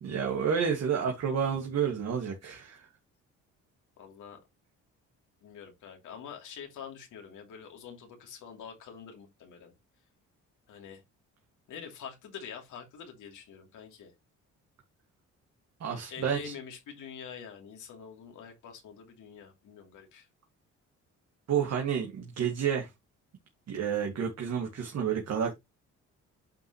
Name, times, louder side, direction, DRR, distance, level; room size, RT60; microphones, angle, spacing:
voice 1, 0.0-2.9 15.8-16.5 21.5-22.9 23.7-25.5, right 7 dB, 60° right, 1.9 m, -30 dB
voice 2, 4.0-4.4 5.4-9.7 10.7-11.0 11.7-14.1 16.1-20.3, left 7 dB, 80° left, 2.8 m, -46 dB
9.0 x 5.8 x 2.9 m
cardioid pair, 90°, 30 cm